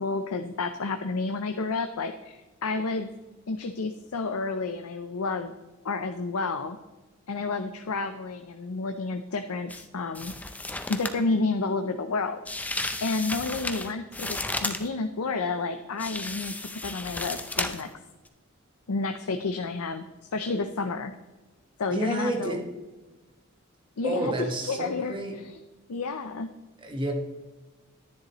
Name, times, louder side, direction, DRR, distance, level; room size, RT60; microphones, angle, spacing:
voice 1, 0.0-3.1 3.5-5.5 5.8-6.8 7.3-10.3 10.9-17.9 18.9-20.0 20.3-21.1 21.8-22.6 24.0-25.6 25.9-26.5, left 3 dB, 85° left, 7 dB, 0.6 m, -30 dB
sound 1, 9.7-9.9 10.1-11.2 12.5-14.9 16.0-17.9 18.3-18.4, left 2 dB, 5° left, 0.5 m, -33 dB
voice 2, 21.9-22.6 24.0-25.3 26.8-27.1, right 2 dB, 20° right, 3 dB, 1.4 m, -30 dB
10.5 x 10.5 x 3.0 m, 1.2 s
head